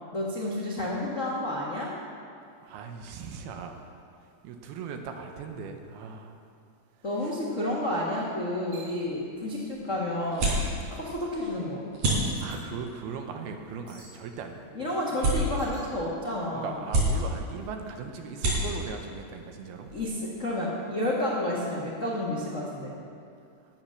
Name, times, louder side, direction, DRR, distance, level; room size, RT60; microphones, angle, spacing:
voice 1, 0.1-1.9 7.0-10.6 10.9-11.9 14.7-16.8 19.9-23.0, left 1 dB, 90° left, -6 dB, 0.6 m, -30 dB
voice 2, 2.6-3.8 4.2-6.4 7.2-7.3 12.4-14.9 16.5-19.9, right 5 dB, 85° right, 5 dB, 2.9 m, -39 dB
sound 1, 8.7-9.0 10.4-10.7 12.1-12.6 13.9-14.2 15.6-15.9, right 3 dB, 45° right, 3.3 m, -50 dB
sound 2, 8.9-20.5, right 1 dB, 65° right, 5.3 m, -33 dB
14.0 x 9.1 x 6.5 m, 2.4 s
omnidirectional pair, 4.4 m